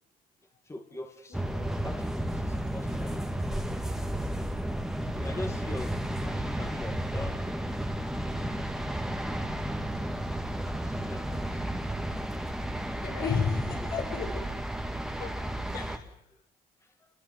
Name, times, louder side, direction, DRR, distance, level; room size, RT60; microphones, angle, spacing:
voice 1, 0.6-3.3 5.1-6.0 6.2-7.7 9.1-10.2 10.8-12.6 13.8-13.9 16.8-17.1, left 2 dB, 15° left, 4 dB, 2.3 m, -43 dB
voice 2, 1.3-1.6 13.0-14.4 15.2-15.3 15.7-16.2, left 5 dB, 65° left, 1 dB, 7.7 m, -32 dB
sound 1, 1.3-16.0, right 1 dB, 5° right, 2.1 m, -33 dB
28.0 x 22.0 x 7.8 m, 0.80 s
cardioid pair, 110°, 17 cm